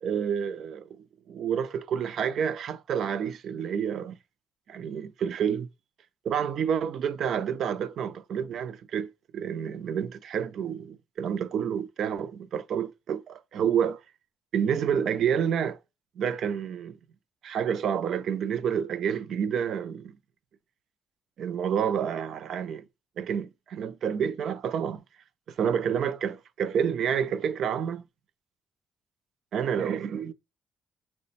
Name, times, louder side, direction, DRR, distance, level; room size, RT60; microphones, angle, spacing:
voice 1, 0.0-1.0 1.3-4.2 4.7-5.7 6.2-14.0 14.5-15.8 16.2-17.0 17.4-20.1 21.4-22.8 23.2-25.0 25.6-28.0 29.5-30.3, right 8 dB, 70° right, 0.4 m, -29 dB
4.9 x 2.2 x 4.0 m
cardioid pair, 90°, 0 cm